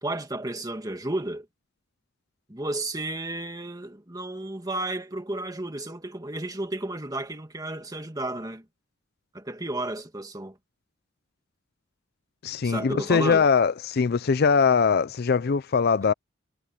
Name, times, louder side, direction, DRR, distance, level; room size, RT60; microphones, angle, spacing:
voice 1, 0.0-1.5 2.5-8.6 9.3-10.6 12.6-13.5, right 2 dB, 20° right, 2.1 m, -32 dB
voice 2, 12.4-16.1, left 5 dB, 50° left, 0.5 m, -22 dB
head